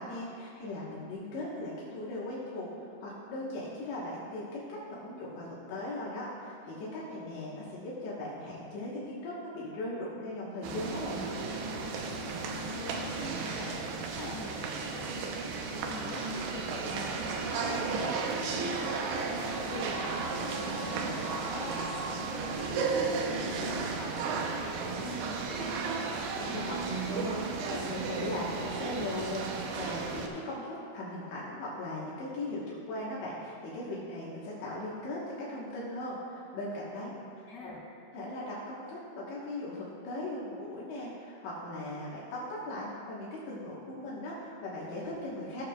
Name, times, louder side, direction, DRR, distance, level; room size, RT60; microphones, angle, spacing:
voice 1, 0.0-11.3 26.1-37.2 37.6-37.7 38.1-45.6, left 1 dB, 70° left, -7 dB, 3.2 m, -38 dB
sound 1, 10.6-30.3, right 4 dB, 80° right, 2.4 m, -34 dB
voice 2, 12.1-25.7 37.0-37.1 37.5-37.8, left 2 dB, 35° left, -7 dB, 2.5 m, -45 dB
18.5 x 6.9 x 2.3 m, 2.5 s
omnidirectional pair, 5.6 m